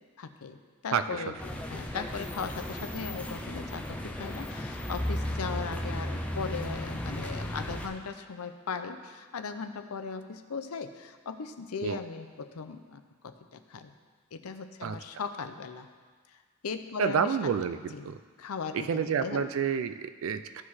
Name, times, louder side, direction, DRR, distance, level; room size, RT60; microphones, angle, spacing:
voice 1, 0.2-13.9 14.3-15.9 16.3-16.4 16.6-17.4 17.9-18.1 18.4-19.5, left 5 dB, 80° left, 8 dB, 0.6 m, -38 dB
voice 2, 0.9-1.2 11.8-12.0 14.8-15.0 17.0-18.2 18.7-20.6, right 7 dB, 65° right, 11 dB, 0.3 m, -29 dB
sound 1, 1.4-7.9, left 1 dB, 5° left, 0.5 m, -35 dB
14.0 x 4.8 x 4.2 m, 1.6 s
head